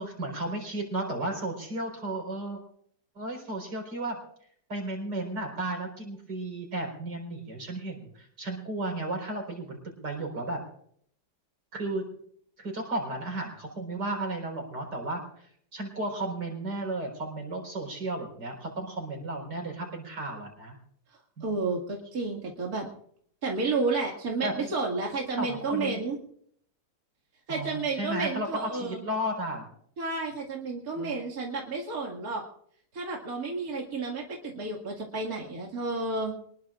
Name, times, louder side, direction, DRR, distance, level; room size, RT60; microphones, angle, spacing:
voice 1, 0.0-2.6 3.1-4.2 4.7-10.6 11.7-12.0 12.6-20.8 21.4-21.5 24.4-24.7 25.4-26.0 27.5-29.7 30.9-31.2, right 1 dB, 85° right, 1 dB, 5.2 m, -34 dB
voice 2, 21.1-22.9 23.4-26.2 27.5-29.0 30.0-32.4 32.9-36.3, right 3 dB, 60° right, -2 dB, 2.7 m, -31 dB
25.0 x 20.5 x 2.5 m, 0.65 s
omnidirectional pair, 1.8 m